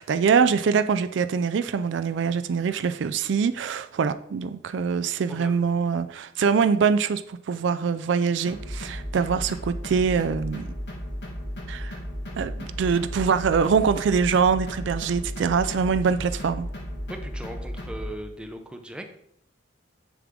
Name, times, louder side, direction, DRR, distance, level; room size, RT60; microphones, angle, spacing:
voice 1, 0.0-10.6 11.7-12.0 12.4-16.7, right 6 dB, 65° right, 10 dB, 0.4 m, -24 dB
sound 1, 8.5-18.1, equal, 60° left, 1.4 m, -35 dB
voice 2, 17.1-19.1, right 1 dB, 5° right, 5 dB, 0.7 m, -38 dB
7.3 x 6.8 x 3.7 m, 0.73 s
head